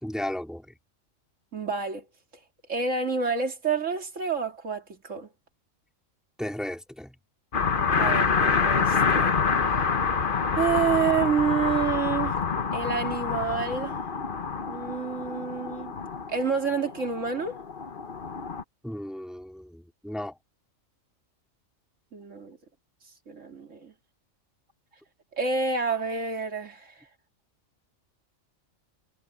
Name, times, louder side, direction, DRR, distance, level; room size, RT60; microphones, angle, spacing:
voice 1, 0.0-0.7 6.4-7.1 18.8-20.4, left 1 dB, ahead, 4.0 m, -34 dB
voice 2, 1.5-2.0 2.7-5.3 8.0-9.4 10.5-12.4 12.7-14.0 14.7-16.0 16.3-17.6 22.1-22.6 23.3-23.9 25.3-26.9, right 5 dB, 70° right, 3.0 m, -28 dB
sound 1, 7.5-18.6, left 5 dB, 45° left, 1.2 m, -27 dB
omnidirectional pair, 1.3 m